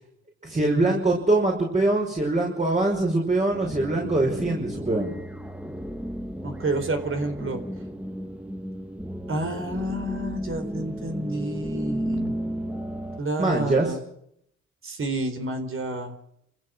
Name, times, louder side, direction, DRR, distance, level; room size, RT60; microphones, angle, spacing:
voice 1, 0.4-5.1 13.4-14.0, right 2 dB, 25° right, -1 dB, 5.8 m, -23 dB
sound 1, 3.5-13.2, equal, 5° right, 1.6 m, -33 dB
voice 2, 6.4-7.6 9.3-12.3 13.2-14.0 14.8-16.1, right 2 dB, 45° right, 6 dB, 4.2 m, -29 dB
29.0 x 15.0 x 6.5 m, 0.73 s
cardioid pair, 90°, 30 cm